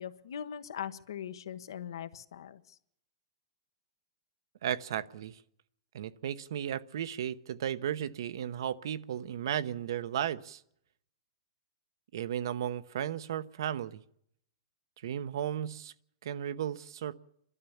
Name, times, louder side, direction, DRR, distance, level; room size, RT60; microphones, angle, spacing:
voice 1, 0.0-2.8, left 9 dB, 85° left, 11 dB, 1.2 m, -41 dB
voice 2, 4.6-5.4 5.9-10.6 12.1-14.0 15.0-15.9 16.2-17.1, right 10 dB, 70° right, 14 dB, 0.8 m, -35 dB
29.5 x 12.5 x 7.1 m, 0.72 s
hypercardioid pair, 160°, 2 cm